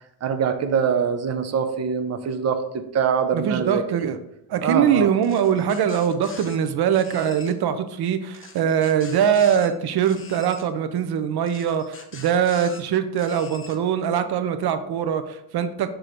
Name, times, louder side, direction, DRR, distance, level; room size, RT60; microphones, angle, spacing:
voice 1, 0.2-2.6 2.9-3.8 4.6-5.1, right 7 dB, 45° right, 8 dB, 0.6 m, -23 dB
voice 2, 3.3-4.2 4.5-15.9, right 8 dB, 85° right, 9 dB, 0.6 m, -22 dB
sound 1, 5.2-6.6 6.9-7.5 8.3-9.7 10.0-10.7 11.5-12.8 13.2-13.8, left 4 dB, 35° left, 0.9 m, -43 dB
6.7 x 3.8 x 4.3 m, 0.80 s
wide cardioid pair, 145°, 37 cm